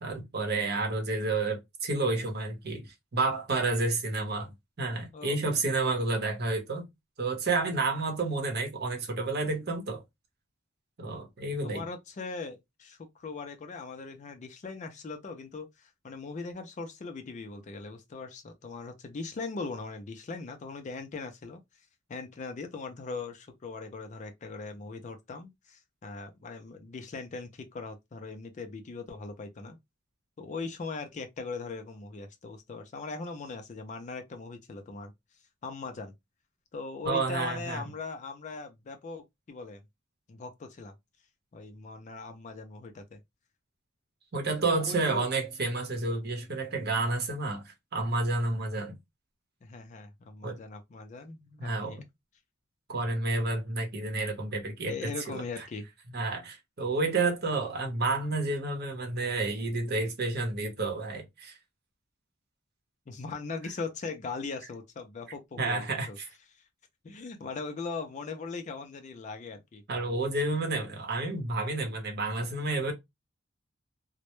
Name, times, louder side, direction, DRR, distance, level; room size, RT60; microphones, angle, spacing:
voice 1, 0.0-4.5 4.8-6.9 7.2-10.0 11.0-11.8 37.0-37.8 44.3-48.9 50.4-50.6 51.6-52.0 52.9-55.7 56.1-61.6 65.6-66.3 69.9-72.9, right 3 dB, 55° right, 0.8 m, -30 dB
voice 2, 11.6-21.6 22.1-29.8 30.4-35.1 35.6-36.1 36.7-39.8 40.3-40.9 41.5-43.2 44.6-45.3 49.6-52.0 54.8-55.9 63.1-66.2 67.0-69.8 70.7-70.8, left 4 dB, 35° left, 0.4 m, -40 dB
2.1 x 2.0 x 2.9 m
head